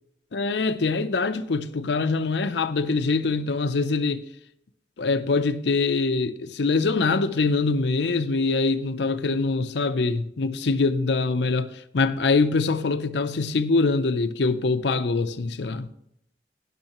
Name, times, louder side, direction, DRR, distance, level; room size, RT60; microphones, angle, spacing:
voice 1, 0.3-4.2 5.0-15.9, left 3 dB, 70° left, 0.6 m, -24 dB
12.0 x 11.0 x 3.0 m
head